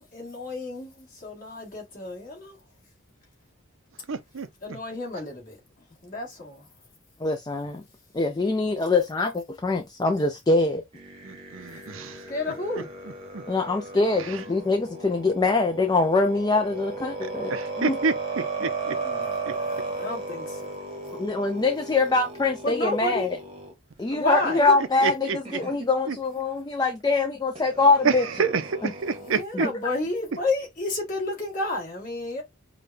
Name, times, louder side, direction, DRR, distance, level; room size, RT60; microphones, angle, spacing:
voice 1, 0.0-2.6 4.6-5.6 6.0-6.6 12.3-12.9 18.9-20.8 22.6-23.3 24.1-24.7 29.2-32.4, left 2 dB, 40° left, 1.8 m, -31 dB
voice 2, 4.1-4.5 11.2-12.2 13.3-13.4 17.5-19.0 25.0-25.4 26.1-26.2 28.0-28.1 28.4-29.7, right 5 dB, 65° right, 0.5 m, -27 dB
voice 3, 7.2-7.8 8.1-10.8 11.7-11.8 13.5-18.0 21.1-23.4 24.0-28.5 28.8-28.9 29.6-29.8, left 3 dB, 20° left, 0.3 m, -24 dB
sound 1, 10.9-23.7 24.7-24.8 25.5-25.8 27.6-29.4, right 3 dB, 25° right, 0.9 m, -35 dB
5.0 x 2.2 x 2.6 m
head